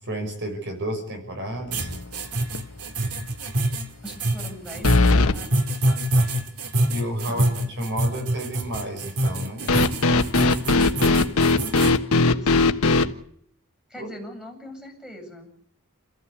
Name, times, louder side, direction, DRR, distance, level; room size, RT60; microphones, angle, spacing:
voice 1, 0.0-1.9 6.9-9.6 14.0-14.1, right 1 dB, 55° right, 4 dB, 5.8 m, -31 dB
sound 1, 1.7-12.0, right 1 dB, 85° right, 2.5 m, -25 dB
sound 2, 1.8-2.2 2.5-2.6 4.8-5.4 9.7-13.1, left 3 dB, 70° left, 1.4 m, -19 dB
voice 2, 4.0-5.9 7.3-7.6 12.2-12.7 13.9-15.5, equal, 5° right, 0 dB, 7.9 m, -41 dB
29.5 x 15.0 x 8.4 m, 0.68 s
head